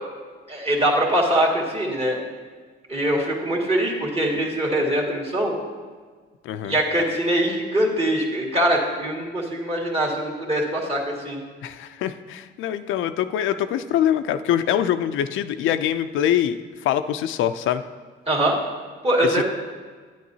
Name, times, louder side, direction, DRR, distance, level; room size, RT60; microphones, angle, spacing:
voice 1, 0.5-2.2 2.9-5.6 6.6-11.4 18.3-18.6 19.0-19.4, right 1 dB, 30° right, -2 dB, 2.0 m, -23 dB
voice 2, 6.4-6.7 11.6-16.6 16.8-17.8 19.3-19.4, left 10 dB, 80° left, 10 dB, 0.4 m, -24 dB
9.8 x 9.3 x 2.8 m, 1.5 s
cardioid pair, 90°, 20 cm